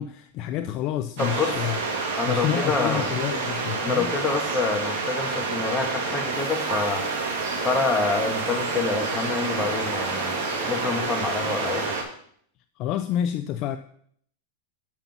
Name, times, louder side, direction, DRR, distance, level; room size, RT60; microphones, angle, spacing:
voice 1, 0.0-1.8 2.3-4.1 12.8-13.8, left 11 dB, 40° left, 0.4 m, -28 dB
voice 2, 1.2-1.6 2.2-3.1 3.8-7.0 7.6-10.3 10.6-12.0, left 4 dB, 15° left, 1.3 m, -27 dB
sound 1, 1.2-12.0, right 4 dB, 55° right, 2.1 m, -28 dB
sound 2, 6.3-11.9, right 1 dB, 15° right, 2.2 m, -39 dB
7.3 x 5.5 x 5.9 m
supercardioid pair, 150°, 0 cm